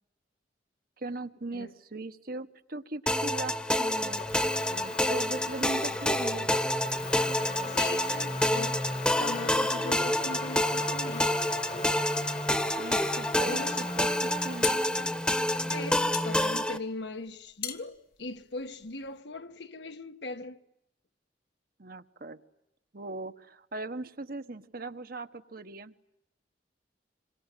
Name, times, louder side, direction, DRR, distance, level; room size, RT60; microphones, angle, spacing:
voice 1, 1.0-4.2 4.7-6.5 12.8-14.8 15.7-15.9 21.8-22.4 22.9-25.9, right 2 dB, 55° right, 1.3 m, -39 dB
sound 1, 3.1-16.8, left 1 dB, 5° left, 1.2 m, -28 dB
Motor vehicle (road), 3.9-16.4, left 4 dB, 40° left, 1.5 m, -43 dB
voice 2, 7.7-8.9 9.2-11.4 13.4-13.8 15.7-20.6, left 3 dB, 70° left, 1.4 m, -39 dB
sound 2, 14.6-19.2, left 10 dB, 55° left, 1.8 m, -40 dB
27.5 x 23.5 x 9.2 m
head